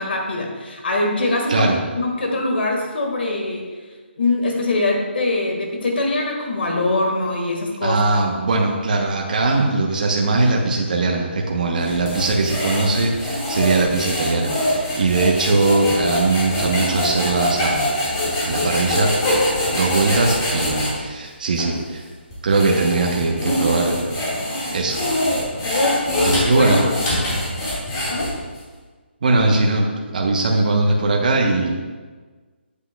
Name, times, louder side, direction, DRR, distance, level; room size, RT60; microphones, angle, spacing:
voice 1, 0.0-3.6 4.2-8.0 25.6-27.0 28.1-28.3, left 2 dB, 60° left, 1 dB, 1.6 m, -23 dB
voice 2, 7.8-17.9 18.4-19.1 19.7-22.0 22.4-24.0 24.7-25.0 26.2-26.8 29.2-29.9 30.1-31.8, right 3 dB, 45° right, 0 dB, 0.9 m, -20 dB
sound 1, 11.8-20.9 21.5-21.7 22.3-28.6, left 1 dB, 20° left, 1.8 m, -24 dB
8.2 x 7.8 x 2.2 m, 1.4 s
hypercardioid pair, 170°, 6 cm